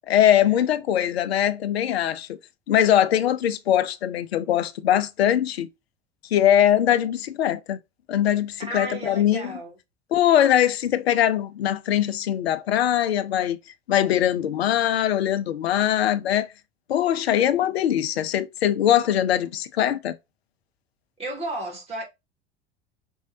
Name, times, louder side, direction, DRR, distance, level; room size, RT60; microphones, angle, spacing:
voice 1, 0.1-2.4 2.7-5.7 6.3-7.8 8.1-9.5 10.1-13.6 13.9-16.5 16.9-20.2, left 11 dB, 70° left, 0.6 m, -21 dB
voice 2, 8.6-9.7 21.2-22.0, right 2 dB, 20° right, 2.2 m, -33 dB
5.4 x 3.1 x 2.6 m
figure-of-eight pair, 75°, 32 cm